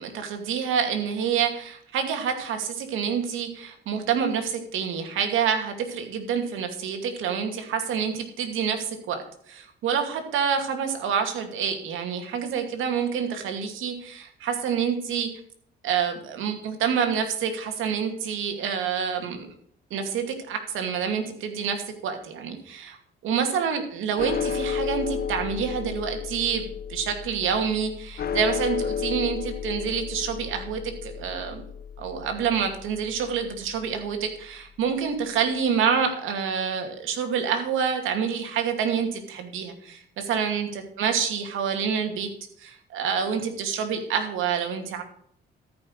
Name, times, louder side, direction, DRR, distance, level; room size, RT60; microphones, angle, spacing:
voice 1, 0.0-15.3 15.8-19.5 19.9-23.0 23.2-31.6 32.0-40.0 40.3-40.7 41.0-42.3 42.6-45.0, right 7 dB, 85° right, 5 dB, 2.5 m, -27 dB
sound 1, 24.2-34.6, left 7 dB, 50° left, 1.2 m, -33 dB
13.5 x 6.0 x 6.4 m, 0.63 s
cardioid pair, 90°, 20 cm